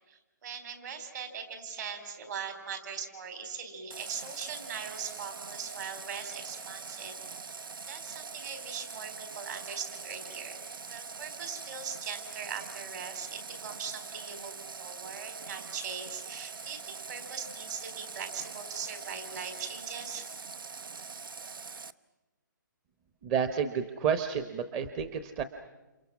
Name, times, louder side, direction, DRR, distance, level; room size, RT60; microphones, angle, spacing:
voice 1, 0.1-7.2 7.4-7.6 7.9-10.6 10.9-20.3, right 6 dB, 55° right, 7 dB, 4.3 m, -40 dB
Water tap faucet, 3.9-21.9, right 5 dB, 85° right, 0.9 m, -43 dB
voice 2, 23.2-25.4, right 7 dB, 25° right, 9 dB, 0.9 m, -30 dB
29.0 x 28.5 x 6.1 m, 1.1 s
hypercardioid pair, 155°, 11 cm